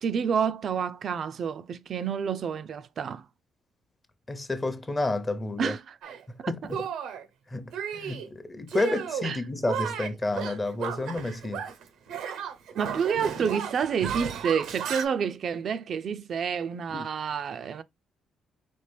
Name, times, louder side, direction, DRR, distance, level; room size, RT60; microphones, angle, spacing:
voice 1, 0.0-3.3 5.6-5.9 6.4-6.7 9.2-9.4 12.8-17.8, right 7 dB, 55° right, 0.4 m, -29 dB
voice 2, 4.3-5.8 6.3-6.9 7.5-11.6 16.9-17.1, left 2 dB, 25° left, 0.7 m, -30 dB
Shatter, 6.0-6.2 6.7-7.3 7.7-8.3 8.7-9.3 9.6-11.8 12.1-15.1, right 8 dB, 85° right, 0.7 m, -34 dB
4.3 x 2.9 x 3.3 m
cardioid pair, 90°, 0 cm